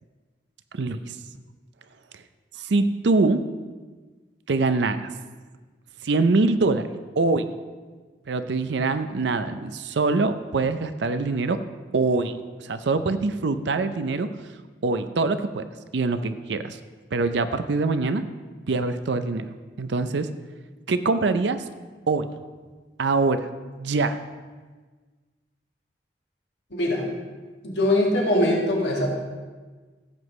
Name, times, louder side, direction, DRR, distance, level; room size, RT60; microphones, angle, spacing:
voice 1, 0.7-1.2 2.1-2.2 2.5-3.4 4.5-5.1 6.0-6.9 7.2-7.5 8.3-11.6 11.9-14.3 14.8-15.6 15.9-16.8 17.1-18.2 18.7-19.5 19.8-20.3 20.9-21.6 22.1-22.3 23.0-23.5 23.8-24.2, right 3 dB, 75° right, 11 dB, 0.5 m, -24 dB
voice 2, 26.7-27.0 27.6-29.1, left 1 dB, 70° left, -2 dB, 2.0 m, -22 dB
15.5 x 7.9 x 3.2 m, 1.4 s
head